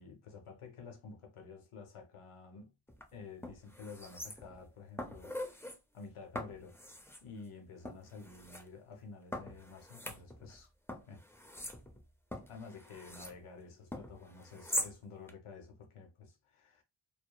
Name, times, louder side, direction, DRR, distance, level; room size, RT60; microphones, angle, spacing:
voice 1, 0.0-2.7 3.1-5.7 5.9-6.8 7.2-10.7 11.1-11.2 12.5-16.8, left 4 dB, 85° left, 0.7 m, -51 dB
sound 1, 2.9-3.0 3.4-4.6 5.0-5.8 6.3-7.2 7.8-8.6 9.3-10.6 10.9-13.4 13.9-14.9 15.3-15.4, left 1 dB, 5° left, 0.5 m, -42 dB
2.8 x 2.0 x 2.2 m
cardioid pair, 45°, 49 cm